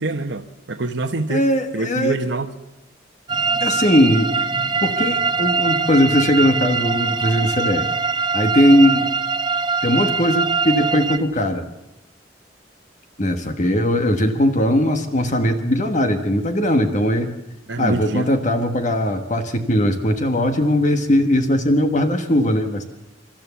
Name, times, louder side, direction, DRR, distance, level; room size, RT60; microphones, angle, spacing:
voice 1, 0.0-1.4 1.7-2.5 17.7-18.3, right 2 dB, 80° right, 3 dB, 1.1 m, -25 dB
voice 2, 1.3-2.1 3.6-4.3 4.8-7.9 8.3-9.1 9.8-11.7 13.2-17.3 17.8-22.8, left 1 dB, 40° left, 7 dB, 1.4 m, -19 dB
sound 1, 3.3-11.2, right 4 dB, 25° right, 1.1 m, -22 dB
28.0 x 13.0 x 7.1 m, 0.95 s
head